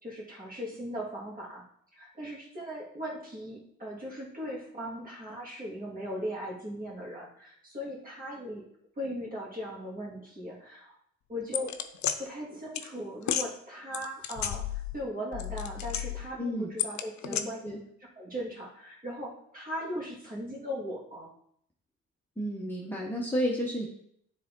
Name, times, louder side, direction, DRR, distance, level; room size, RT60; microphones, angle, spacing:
voice 1, 0.0-1.7 1.9-8.6 9.0-11.0 11.3-11.8 12.2-17.7 18.2-21.3, equal, 30° right, -4 dB, 2.6 m, -38 dB
sound 1, 11.5-12.2 12.8-12.9 13.2-13.5 13.9-15.0 15.3-16.3 16.8-17.4, left 11 dB, 65° left, 0.6 m, -32 dB
voice 2, 16.4-16.7 17.3-17.8 22.4-23.9, equal, 5° left, -4 dB, 1.1 m, -32 dB
9.5 x 3.8 x 3.8 m, 0.69 s
cardioid pair, 90°, 30 cm